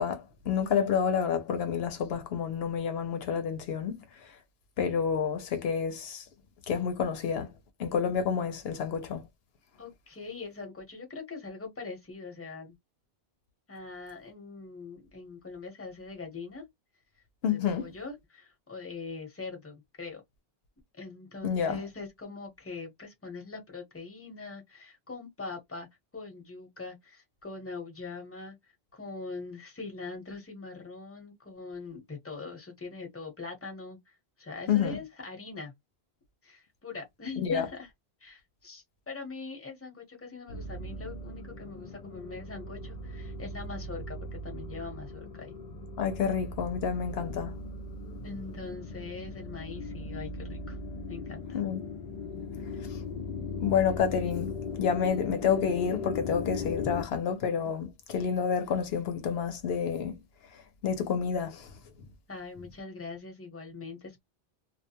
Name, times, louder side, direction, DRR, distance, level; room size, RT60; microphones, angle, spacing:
voice 1, 0.0-4.0 4.8-6.2 6.7-7.5 7.8-9.2 17.4-17.9 21.4-21.8 34.7-35.0 37.4-37.7 46.0-47.6 48.1-48.2 51.5-51.8 53.6-54.5 54.8-60.2 60.8-61.7, left 7 dB, 75° left, 0.8 m, -29 dB
voice 2, 9.8-12.8 13.7-16.6 17.5-20.2 21.0-25.9 26.1-28.6 28.9-34.0 34.4-35.7 36.4-37.9 38.2-45.5 48.2-50.8 51.1-51.6 62.3-64.2, left 4 dB, 15° left, 0.8 m, -42 dB
sound 1, 40.5-57.0, left 3 dB, 55° left, 0.5 m, -38 dB
2.3 x 2.2 x 2.8 m
omnidirectional pair, 1.1 m